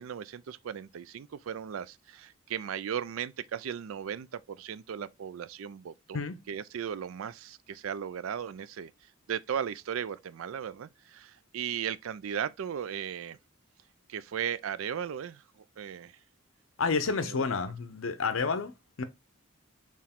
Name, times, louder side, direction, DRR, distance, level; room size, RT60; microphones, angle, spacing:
voice 1, 0.0-8.9 9.3-13.4 14.1-15.4 15.8-16.2 17.2-17.4, right 8 dB, 80° right, 0.4 m, -36 dB
voice 2, 16.8-19.0, left 4 dB, 75° left, 0.7 m, -30 dB
4.6 x 3.0 x 3.5 m
head